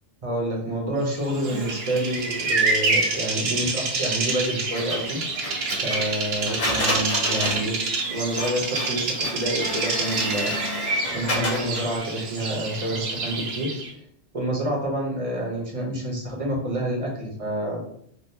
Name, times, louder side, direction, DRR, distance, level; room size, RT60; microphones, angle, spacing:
voice 1, 0.2-5.2 5.8-10.8 11.1-13.7 14.3-17.8, right 1 dB, 35° right, -2 dB, 0.8 m, -28 dB
Bird vocalization bird call bird song, 1.2-13.9, right 3 dB, 70° right, 0.9 m, -27 dB
Printer, 4.7-12.0, left 1 dB, 45° left, 1.0 m, -31 dB
3.5 x 2.3 x 2.7 m, 0.68 s
omnidirectional pair, 1.1 m